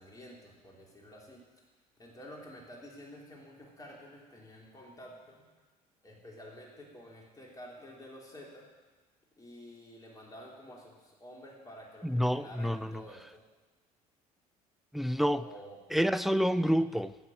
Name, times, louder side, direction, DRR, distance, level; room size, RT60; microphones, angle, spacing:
voice 1, 0.0-1.4 2.0-5.4 6.0-8.7 9.4-13.4 15.4-15.8, equal, 20° left, -3 dB, 3.3 m, -50 dB
voice 2, 12.0-13.0 14.9-15.5 15.9-17.2, equal, ahead, 15 dB, 0.3 m, -28 dB
11.0 x 7.9 x 6.3 m, 1.3 s
figure-of-eight pair, 60°, 19 cm